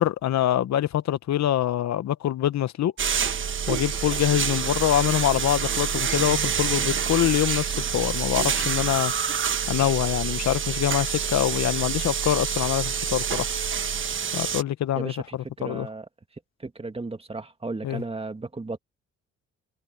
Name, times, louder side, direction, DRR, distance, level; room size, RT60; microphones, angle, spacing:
voice 1, 0.0-2.9 3.7-9.1 9.7-13.5 14.3-15.9 17.8-18.0, left 12 dB, 65° left, 1.0 m, -25 dB
sound 1, 3.0-14.6, right 7 dB, 40° right, 1.2 m, -27 dB
voice 2, 15.0-16.1 16.6-18.8, right 3 dB, 20° right, 2.2 m, -35 dB
cardioid pair, 90°, 30 cm